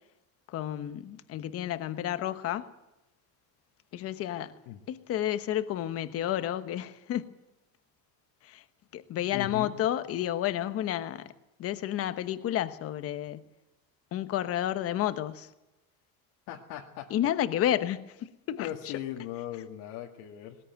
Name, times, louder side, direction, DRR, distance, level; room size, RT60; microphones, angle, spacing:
voice 1, 0.5-2.7 3.9-4.5 4.9-7.3 8.4-8.6 8.9-11.3 11.6-13.4 14.1-15.5 17.1-18.9, left 12 dB, 35° left, 1.1 m, -31 dB
voice 2, 9.3-9.7 16.5-17.1 17.5-17.6 18.6-20.6, left 12 dB, 70° left, 2.0 m, -38 dB
20.0 x 19.5 x 9.2 m
cardioid pair, 180°, 40 cm